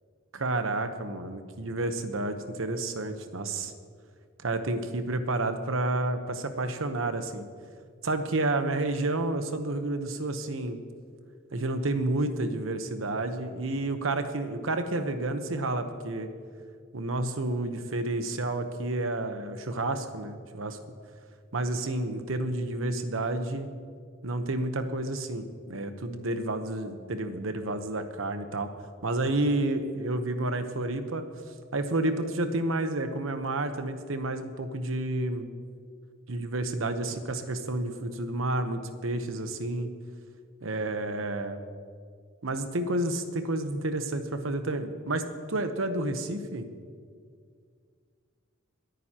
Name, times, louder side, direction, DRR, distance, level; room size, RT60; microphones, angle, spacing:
voice 1, 0.3-3.7 4.4-7.4 8.0-10.8 11.5-16.3 16.9-20.8 21.5-23.7 24.2-28.7 29.0-31.2 31.7-35.5 36.3-39.9 40.6-41.6 42.4-46.7, right 2 dB, 85° right, 8 dB, 1.0 m, -30 dB
27.0 x 9.2 x 2.9 m, 2.1 s
head